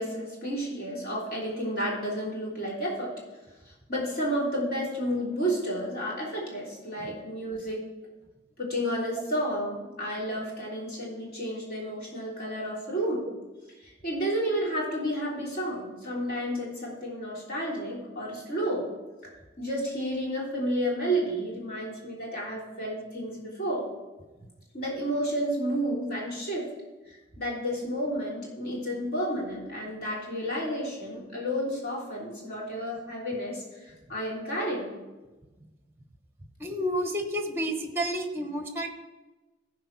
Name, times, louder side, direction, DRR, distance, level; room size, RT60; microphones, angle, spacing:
voice 1, 0.0-3.1 3.9-7.9 8.6-13.3 13.8-18.9 19.2-19.3 19.6-23.9 24.7-26.7 27.1-34.9, equal, 50° left, -5 dB, 3.4 m, -31 dB
voice 2, 36.6-38.9, equal, 10° right, 6 dB, 0.9 m, -30 dB
13.5 x 4.9 x 6.0 m, 1.1 s
head